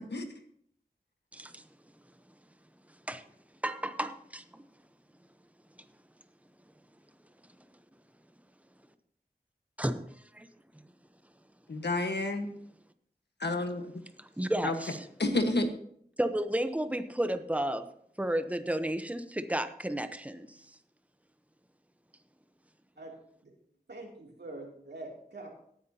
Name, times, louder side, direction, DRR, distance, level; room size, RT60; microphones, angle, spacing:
voice 1, 1.3-1.6 3.1-3.2 3.6-4.7 9.8-10.1 10.3-10.5 10.7-10.8 14.2-15.0 16.2-17.9 18.2-20.6, right 1 dB, 10° right, 10 dB, 0.8 m, -32 dB
voice 2, 11.7-12.5 13.4-13.9 14.6-14.7 15.2-15.7, left 2 dB, 85° left, 6 dB, 1.4 m, -29 dB
voice 3, 23.9-25.5, right 2 dB, 90° right, -1 dB, 2.9 m, -44 dB
18.0 x 9.4 x 2.9 m, 0.67 s
wide cardioid pair, 55°, 17 cm